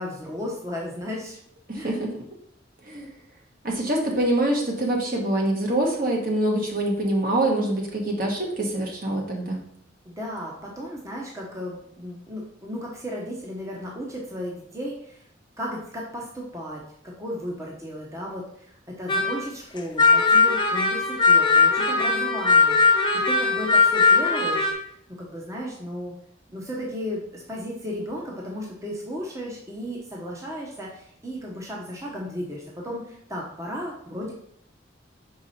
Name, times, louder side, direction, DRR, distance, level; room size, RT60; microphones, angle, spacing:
voice 1, 0.0-1.4 1.8-2.0 10.0-15.2 15.6-16.8 17.2-24.7 25.2-26.1 26.5-34.3, equal, 15° right, -3 dB, 0.9 m, -34 dB
voice 2, 1.7-2.1 2.8-3.1 3.6-9.6, right 1 dB, 50° right, 0 dB, 1.3 m, -25 dB
sound 1, 19.1-19.5 19.8-24.7, left 4 dB, 25° left, 0.8 m, -19 dB
5.4 x 4.7 x 4.2 m, 0.70 s
head